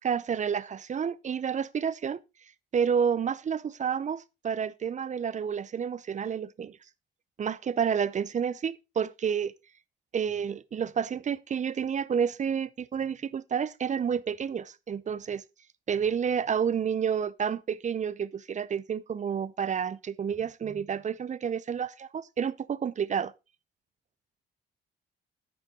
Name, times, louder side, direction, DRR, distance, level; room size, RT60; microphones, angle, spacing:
voice 1, 0.0-2.2 2.7-6.8 7.4-9.5 10.1-15.4 15.9-23.3, right 7 dB, 40° right, 0.6 m, -30 dB
9.8 x 8.6 x 3.8 m
cardioid pair, 90°, 20 cm